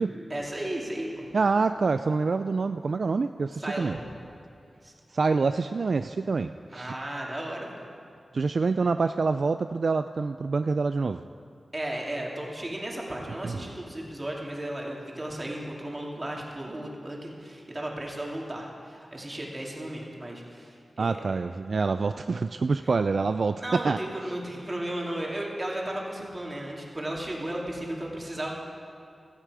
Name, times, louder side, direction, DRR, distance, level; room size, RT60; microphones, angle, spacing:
voice 1, 0.3-1.3 3.6-4.0 4.8-4.9 6.7-7.9 11.7-21.4 23.6-28.5, right 1 dB, 25° right, -2 dB, 2.5 m, -35 dB
voice 2, 1.3-4.0 5.1-6.9 8.3-11.2 13.4-13.6 21.0-24.0, right 4 dB, 65° right, 9 dB, 0.3 m, -26 dB
16.0 x 13.5 x 4.9 m, 2.5 s
wide cardioid pair, 100°, 0 cm